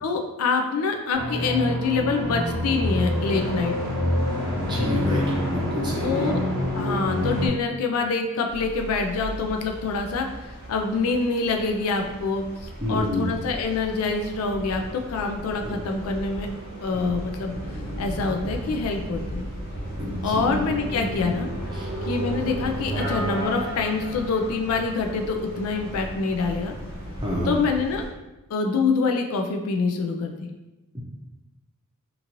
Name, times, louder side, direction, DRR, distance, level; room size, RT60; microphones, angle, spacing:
voice 1, 0.0-4.0 6.0-6.4 6.7-16.5 16.8-17.6 18.0-19.5 20.2-21.5 22.1-26.7 27.5-28.0 28.5-30.4, left 4 dB, 75° left, 4 dB, 0.4 m, -26 dB
sound 1, 1.1-7.5, left 1 dB, 60° right, 0.8 m, -26 dB
voice 2, 4.5-6.4 12.8-13.3 15.6-15.8 16.9-17.0 20.0-20.5 21.7-21.9 27.2-27.5 30.9-31.0, left 1 dB, 20° right, -3 dB, 0.5 m, -28 dB
sound 2, 8.5-28.1, right 1 dB, 85° right, 1.1 m, -35 dB
sound 3, 21.6-22.5 22.9-25.7, left 1 dB, 15° left, 1.0 m, -36 dB
2.9 x 2.6 x 2.5 m, 1.0 s
head